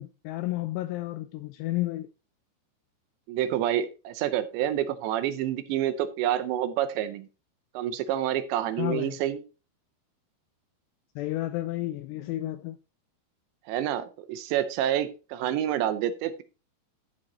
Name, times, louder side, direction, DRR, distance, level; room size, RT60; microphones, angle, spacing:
voice 1, 0.0-2.1 8.8-9.2 11.2-12.8, left 16 dB, 85° left, 2.4 m, -31 dB
voice 2, 3.3-7.3 7.7-9.4 13.7-16.4, right 11 dB, 80° right, 2.9 m, -28 dB
11.5 x 5.1 x 4.0 m
omnidirectional pair, 5.3 m